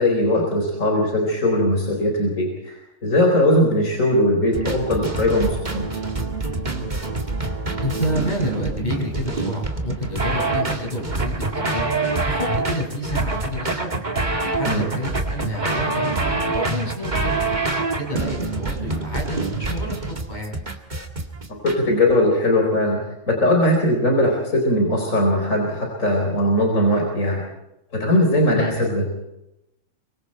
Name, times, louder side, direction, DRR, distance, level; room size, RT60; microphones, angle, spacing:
voice 1, 0.0-5.8 14.7-14.8 21.6-23.0 23.3-27.4 27.9-29.1, left 1 dB, 80° left, 1 dB, 4.8 m, -20 dB
sound 1, 4.5-21.8, right 3 dB, 35° right, 2.3 m, -26 dB
voice 2, 7.8-11.9 12.3-14.0 14.5-17.4 18.0-20.0 20.3-20.6 28.5-28.7, equal, 35° left, -1 dB, 7.0 m, -29 dB
25.5 x 24.5 x 4.5 m, 0.88 s
omnidirectional pair, 1.3 m